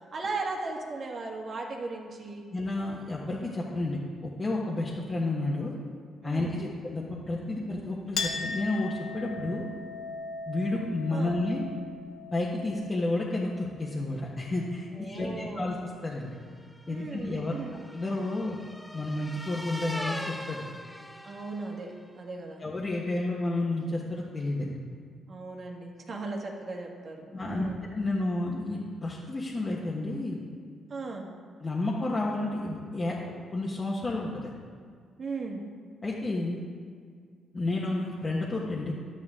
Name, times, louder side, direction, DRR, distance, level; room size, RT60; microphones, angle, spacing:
voice 1, 0.1-2.5 6.2-6.7 11.1-11.4 15.0-15.7 16.9-17.8 21.2-22.6 25.3-27.8 30.9-31.3 35.2-35.6, right 3 dB, 50° right, 1 dB, 1.6 m, -37 dB
voice 2, 2.5-5.7 6.2-9.7 10.5-11.6 12.3-15.8 16.0-16.3 16.9-17.6 17.9-18.6 18.9-20.7 22.6-24.7 27.3-30.4 31.6-34.5 36.0-36.6 37.5-38.9, left 2 dB, 30° left, -5 dB, 1.3 m, -31 dB
Chink clink, 8.2-15.2, left 4 dB, 75° left, 1.0 m, -39 dB
sound 1, 16.5-21.9, equal, ahead, 0.7 m, -41 dB
11.0 x 9.0 x 3.7 m, 2.1 s
cardioid pair, 90°, 0 cm